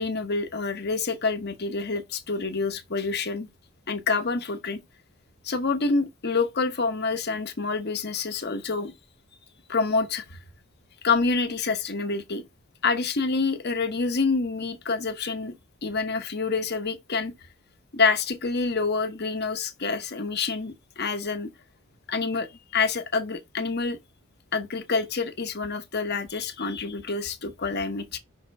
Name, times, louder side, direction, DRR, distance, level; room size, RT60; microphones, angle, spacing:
voice 1, 0.0-3.5 3.9-4.8 5.4-8.9 9.7-10.4 11.0-12.4 12.8-15.5 15.8-17.3 17.9-21.5 22.1-22.5 22.7-24.0 24.5-28.2, left 4 dB, 50° left, 1.0 m, -27 dB
5.7 x 3.2 x 5.3 m
head